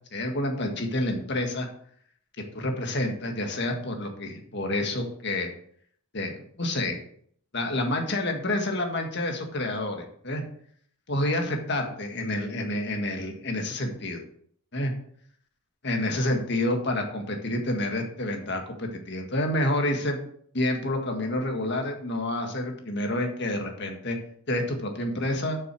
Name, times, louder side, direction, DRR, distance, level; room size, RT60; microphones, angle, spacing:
voice 1, 0.1-1.7 2.5-5.5 6.1-7.0 7.5-10.4 11.1-14.2 14.7-14.9 15.8-20.2 20.5-24.2 24.5-25.6, left 1 dB, 55° left, 3 dB, 1.8 m, -28 dB
7.6 x 6.6 x 6.1 m, 0.63 s
head